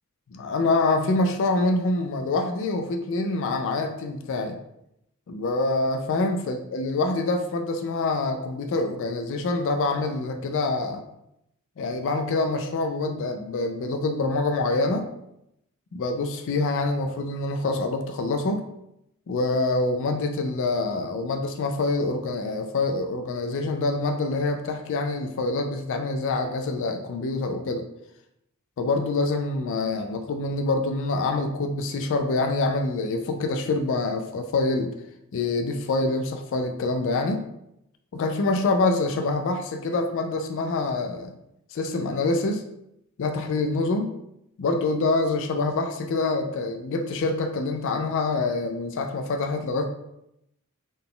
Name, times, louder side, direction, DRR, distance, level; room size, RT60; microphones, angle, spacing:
voice 1, 0.3-4.6 5.3-11.0 11.8-15.1 15.9-18.6 19.3-27.9 28.8-34.9 35.3-37.4 38.1-41.3 41.7-42.6 43.2-44.1 44.6-49.9, left 3 dB, 60° left, 5 dB, 0.4 m, -26 dB
3.8 x 2.2 x 3.6 m, 0.81 s
head